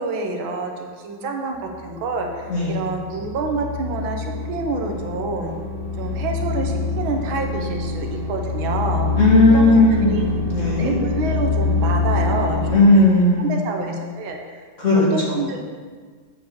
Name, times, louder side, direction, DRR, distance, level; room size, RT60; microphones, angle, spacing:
voice 1, 0.0-5.5 6.0-9.1 9.5-10.2 10.8-13.0 13.4-14.6 14.9-15.6, right 3 dB, 80° right, 2 dB, 1.8 m, -28 dB
sound 1, 1.6-12.7, left 3 dB, 85° left, 3.6 m, -25 dB
voice 2, 9.2-10.9 12.7-13.8 14.8-15.4, left 2 dB, 40° left, -5 dB, 2.1 m, -16 dB
8.0 x 4.7 x 6.8 m, 1.5 s
omnidirectional pair, 2.2 m